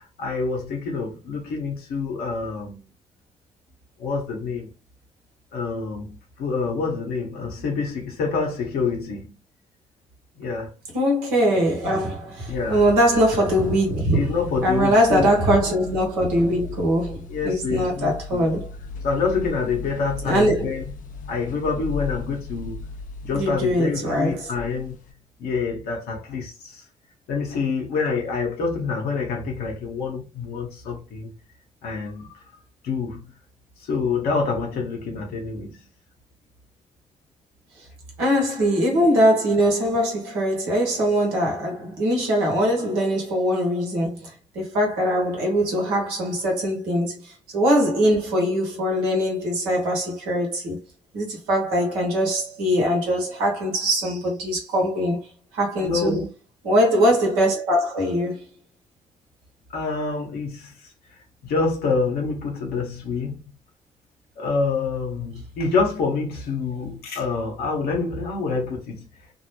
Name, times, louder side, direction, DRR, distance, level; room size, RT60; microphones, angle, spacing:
voice 1, 0.0-2.8 4.0-4.7 5.5-9.3 10.3-10.7 12.5-12.8 14.1-15.3 17.3-18.6 19.0-20.9 21.3-22.9 23.3-25.0 25.4-26.8 27.3-31.3 31.8-32.4 32.8-33.2 33.8-35.8 55.8-56.3 59.7-60.7 61.4-63.4 64.4-69.0, left 4 dB, 70° left, 0.9 m, -27 dB
voice 2, 10.9-14.3 14.6-18.7 20.2-20.7 23.3-24.5 38.2-50.8 51.1-56.2 56.6-58.5, equal, 80° right, 1.0 m, -22 dB
sound 1, 12.5-25.1, left 4 dB, 55° left, 0.5 m, -37 dB
2.5 x 2.0 x 2.9 m
hypercardioid pair, 40°, 16 cm